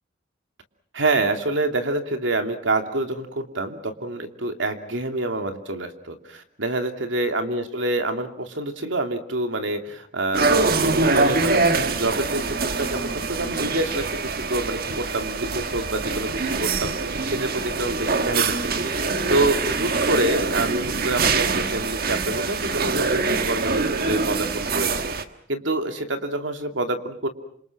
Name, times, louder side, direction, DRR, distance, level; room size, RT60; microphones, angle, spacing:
voice 1, 0.9-18.8 19.3-25.1 25.5-27.3, right 2 dB, 75° right, 6 dB, 2.7 m, -27 dB
sound 1, 10.3-25.2, right 4 dB, 50° right, 1.5 m, -24 dB
28.5 x 27.0 x 6.0 m, 0.64 s
head